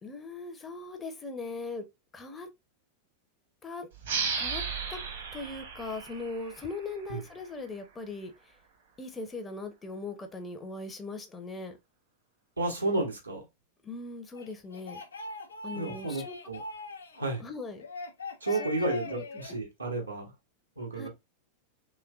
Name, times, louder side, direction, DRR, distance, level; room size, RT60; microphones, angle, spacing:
voice 1, 0.0-1.8 2.1-2.5 3.6-3.9 4.4-4.6 4.9-5.0 5.3-8.6 9.0-11.8 13.8-15.0 15.6-16.4 17.4-17.8 18.5-19.2 20.9-21.1, left 3 dB, 15° left, 0.7 m, -39 dB
sound 1, 4.0-7.3, right 5 dB, 60° right, 1.2 m, -35 dB
voice 2, 12.6-13.4 15.7-16.6 17.1-17.4 18.4-20.3 20.8-21.1, right 2 dB, 80° right, 1.2 m, -32 dB
sound 2, 14.3-17.2 17.8-19.5, left 3 dB, 75° left, 0.5 m, -41 dB
3.2 x 3.1 x 2.4 m
figure-of-eight pair, 90°, 0 cm